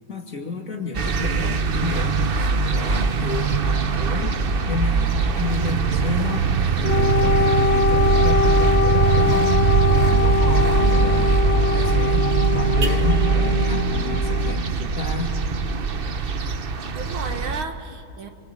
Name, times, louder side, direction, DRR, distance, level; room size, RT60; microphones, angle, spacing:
voice 1, 0.1-2.2 2.7-3.7 3.9-4.4 4.7-6.5 6.8-9.5 9.9-12.3 12.5-15.3, left 3 dB, 40° left, 2 dB, 2.8 m, -31 dB
sound 1, 0.9-17.6, right 5 dB, 50° right, 0.6 m, -21 dB
Wind instrument woodwind instrument, 6.8-14.6, left 6 dB, 70° left, 1.5 m, -23 dB
voice 2, 10.2-11.1 17.0-18.3, right 5 dB, 85° right, 6 dB, 2.6 m, -33 dB
27.5 x 24.0 x 8.6 m, 2.4 s
omnidirectional pair, 2.2 m